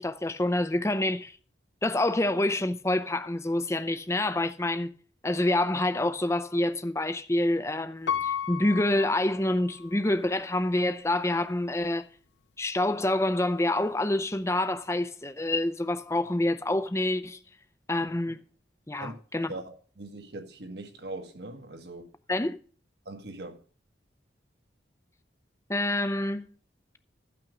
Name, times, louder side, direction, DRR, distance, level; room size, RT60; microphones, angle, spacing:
voice 1, 0.0-1.4 1.8-4.9 5.2-12.1 12.6-17.4 17.9-18.4 18.9-19.5 22.3-22.6 25.7-26.5, left 1 dB, 15° left, 0.6 m, -27 dB
Piano, 8.1-10.0 10.6-10.7, left 8 dB, 75° left, 0.5 m, -33 dB
voice 2, 19.5-22.1 23.0-23.6, right 2 dB, 60° right, 1.6 m, -41 dB
13.5 x 5.9 x 6.2 m
head